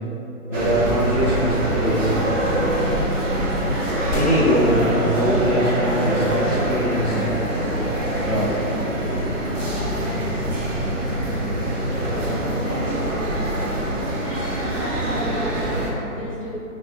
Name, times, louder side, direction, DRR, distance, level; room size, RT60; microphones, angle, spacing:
voice 1, 0.5-2.1 4.1-7.2 8.1-8.6, equal, 15° right, -17 dB, 0.9 m, -22 dB
sound 1, 0.5-15.9, right 1 dB, 55° right, 0.7 m, -24 dB
sound 2, 1.6-7.6, right 1 dB, 90° right, 1.1 m, -42 dB
sound 3, 4.1-6.4, left 1 dB, 75° left, 0.5 m, -36 dB
voice 2, 12.2-13.7 14.2-16.5, left 1 dB, 20° left, -13 dB, 0.7 m, -34 dB
3.5 x 3.3 x 2.9 m, 2.9 s
hypercardioid pair, 165°, 45 cm